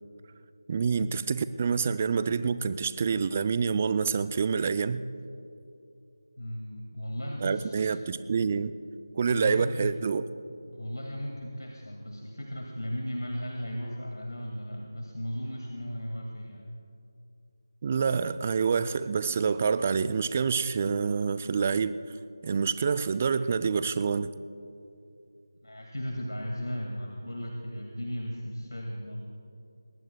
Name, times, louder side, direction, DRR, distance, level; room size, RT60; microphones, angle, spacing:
voice 1, 0.7-5.0 7.4-8.7 9.2-10.2 17.8-21.9 22.4-24.3, right 5 dB, 25° right, 14 dB, 0.4 m, -27 dB
voice 2, 6.4-8.0 9.2-10.0 10.7-16.7 25.6-29.3, equal, 75° left, 0 dB, 2.1 m, -36 dB
23.0 x 20.5 x 2.3 m, 2.6 s
figure-of-eight pair, 165°, 2 cm